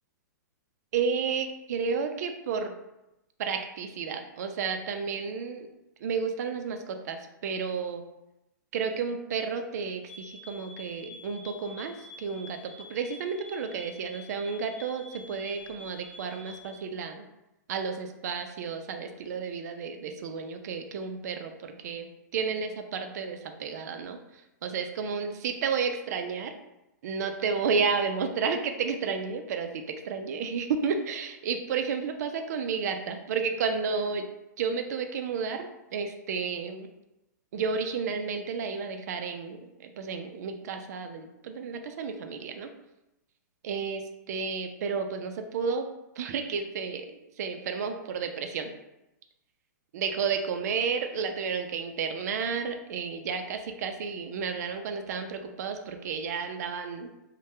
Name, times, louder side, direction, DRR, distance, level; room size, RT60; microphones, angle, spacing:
voice 1, 0.9-2.7 3.4-5.7 6.0-8.0 8.7-17.3 17.7-24.2 24.6-26.5 27.0-34.3 34.6-36.9 37.5-42.7 43.6-45.9 46.2-47.1 47.4-48.7 49.9-57.1, right 5 dB, 60° right, 6 dB, 0.4 m, -32 dB
sound 1, 10.1-16.8, left 2 dB, 15° left, 0.3 m, -48 dB
2.7 x 2.2 x 3.2 m, 0.92 s
hypercardioid pair, 135°, 10 cm